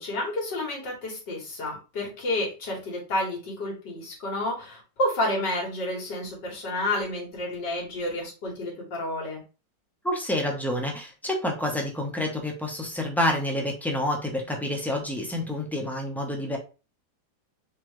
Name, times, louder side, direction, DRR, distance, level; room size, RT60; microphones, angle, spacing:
voice 1, 0.0-9.4, left 1 dB, 85° left, -2 dB, 2.3 m, -30 dB
voice 2, 10.0-16.6, left 1 dB, ahead, 1 dB, 0.6 m, -28 dB
4.2 x 3.8 x 3.1 m, 0.32 s
omnidirectional pair, 1.8 m